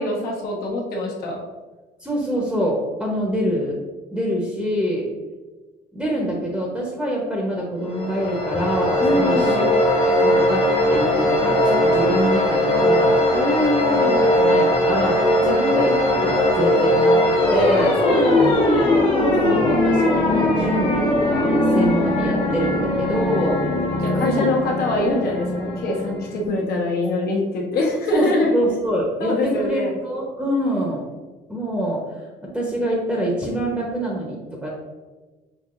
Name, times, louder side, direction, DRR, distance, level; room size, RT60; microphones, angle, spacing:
voice 1, 0.0-1.4 9.0-9.6 13.3-14.4 17.7-19.0 24.0-28.5 29.2-30.0, left 2 dB, 65° left, -2 dB, 1.2 m, -24 dB
voice 2, 2.0-3.8 4.1-5.1 5.9-10.6 10.9-13.2 14.0-18.0 19.1-23.6 24.2-24.5 28.1-31.0 31.5-32.0 32.4-34.7, equal, 5° right, -3 dB, 0.9 m, -25 dB
sound 1, 7.8-26.5, left 1 dB, 35° left, 1.1 m, -19 dB
5.9 x 2.9 x 2.5 m, 1.2 s
cardioid pair, 110°, 17 cm